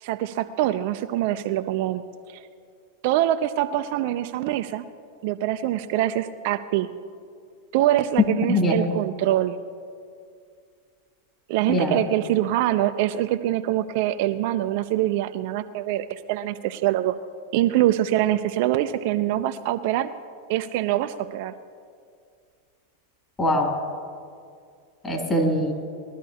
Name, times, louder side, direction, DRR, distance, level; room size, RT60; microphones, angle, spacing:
voice 1, 0.0-2.0 2.3-2.4 3.0-4.8 5.2-6.9 7.7-9.6 11.5-17.1 17.5-20.1 20.5-21.5, right 13 dB, 60° right, 9 dB, 0.5 m, -24 dB
voice 2, 8.5-8.9 11.7-12.0 23.4-23.7 25.0-25.7, equal, 20° left, 1 dB, 2.9 m, -22 dB
21.0 x 12.0 x 2.8 m, 2.2 s
hypercardioid pair, 100°, 0 cm